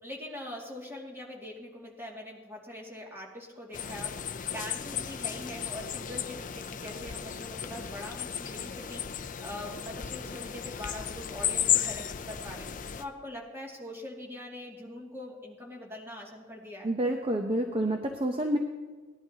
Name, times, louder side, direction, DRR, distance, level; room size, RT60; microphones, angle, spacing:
voice 1, 0.0-12.7 13.0-16.9, left 1 dB, 10° right, -3 dB, 2.4 m, -43 dB
sound 1, 3.7-13.0, left 9 dB, 40° left, 0.5 m, -34 dB
voice 2, 16.8-18.6, right 1 dB, 30° right, 3 dB, 0.8 m, -28 dB
19.0 x 11.5 x 2.9 m, 1.3 s
head